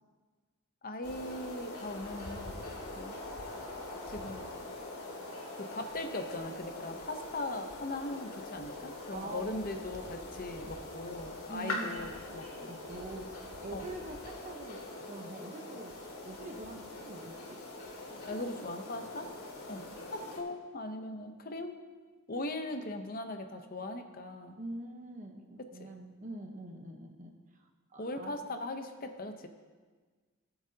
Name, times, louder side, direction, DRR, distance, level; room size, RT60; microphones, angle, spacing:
voice 1, 0.8-2.6 2.9-3.2 4.1-4.5 5.5-12.7 13.7-13.9 18.3-19.3 19.7-19.8 20.1-21.7 22.3-24.6 25.8-25.9 28.0-29.5, left 2 dB, 40° left, 6 dB, 0.8 m, -39 dB
sound 1, 1.0-20.4, left 2 dB, 85° left, 2.4 m, -43 dB
voice 2, 9.1-9.8 11.5-12.0 12.7-15.9 16.2-17.6 18.1-18.7 19.7-19.9 24.6-28.3, right 1 dB, 35° right, 3 dB, 0.9 m, -45 dB
18.0 x 8.9 x 2.8 m, 1.4 s
head